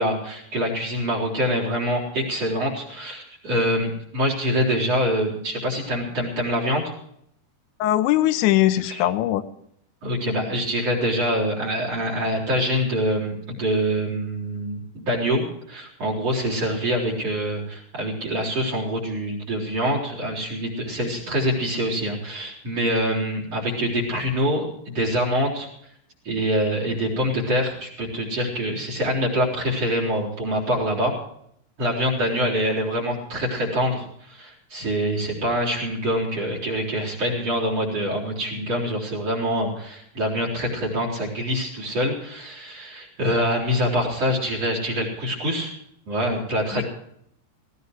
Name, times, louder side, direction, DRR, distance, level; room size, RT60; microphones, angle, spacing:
voice 1, 0.0-6.9 8.8-9.0 10.0-25.7 26.2-31.1 31.8-45.7 46.1-46.8, equal, 35° right, 0 dB, 4.8 m, -25 dB
voice 2, 7.8-9.4 46.8-46.9, left 14 dB, 85° left, 11 dB, 3.2 m, -20 dB
18.5 x 17.5 x 3.1 m, 0.70 s
omnidirectional pair, 5.2 m